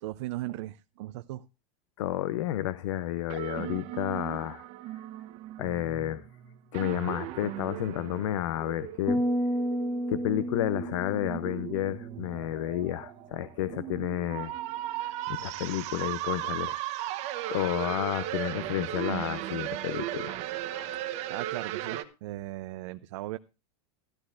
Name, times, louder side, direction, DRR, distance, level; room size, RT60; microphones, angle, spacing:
voice 1, 0.0-1.4 20.9-21.0 21.3-23.4, right 16 dB, 70° right, 11 dB, 0.6 m, -37 dB
voice 2, 2.0-4.7 5.6-6.2 6.7-9.2 10.1-14.5 14.9-16.8 17.5-20.4 20.7-21.1, left 13 dB, 75° left, 14 dB, 0.7 m, -31 dB
sound 1, 3.3-22.0, right 14 dB, 45° right, 1.1 m, -37 dB
sound 2, 9.1-12.5, equal, 10° left, 1.6 m, -31 dB
14.0 x 13.5 x 2.5 m, 0.28 s
supercardioid pair, 135°, 16 cm